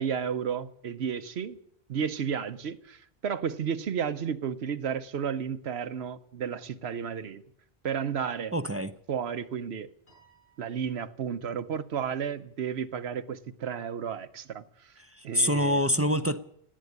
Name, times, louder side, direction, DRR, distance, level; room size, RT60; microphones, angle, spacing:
voice 1, 0.0-1.6 1.9-7.4 7.8-8.5 9.1-9.9 10.6-14.9 15.2-15.9, right 7 dB, 80° right, 1.1 m, -32 dB
voice 2, 8.5-8.9 15.0-16.4, equal, 20° right, 0.4 m, -26 dB
Piano, 10.1-11.6, right 4 dB, 50° left, 6.4 m, -64 dB
18.0 x 8.5 x 9.4 m
omnidirectional pair, 1.1 m